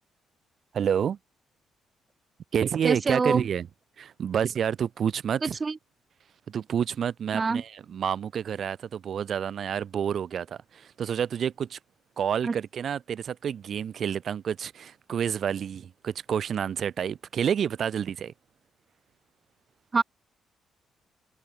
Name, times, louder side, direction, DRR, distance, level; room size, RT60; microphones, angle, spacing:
voice 1, 0.7-1.2 2.5-3.7 4.0-5.6 6.5-11.8 12.2-18.3, right 8 dB, 55° right, 5.0 m, -29 dB
voice 2, 2.8-3.4 5.4-5.8 7.3-7.6 12.4-12.5 19.9-20.0, right 4 dB, 30° right, 5.8 m, -25 dB
cardioid pair, 90°, 0 cm